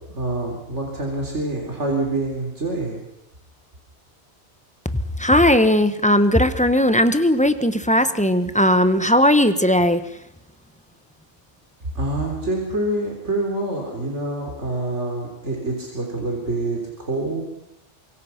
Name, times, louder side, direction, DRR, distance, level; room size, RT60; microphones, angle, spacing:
voice 1, 0.1-3.0 12.0-17.4, right 2 dB, 85° right, 0 dB, 4.2 m, -26 dB
voice 2, 5.2-10.0, left 1 dB, 5° left, 11 dB, 1.0 m, -17 dB
25.5 x 23.0 x 5.9 m, 0.79 s
omnidirectional pair, 1.2 m